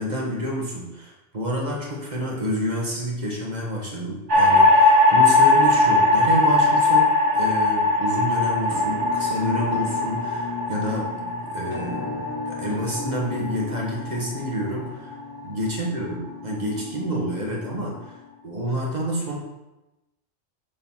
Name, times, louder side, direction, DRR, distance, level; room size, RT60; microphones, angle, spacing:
voice 1, 0.0-15.1 15.4-18.2 18.4-19.4, equal, 40° right, -2 dB, 1.5 m, -28 dB
sound 1, 4.3-14.6, left 2 dB, 80° right, 1.4 m, -20 dB
Musical instrument, 8.7-18.5, left 4 dB, 30° left, 0.5 m, -36 dB
6.9 x 3.9 x 5.5 m, 0.99 s
omnidirectional pair, 1.2 m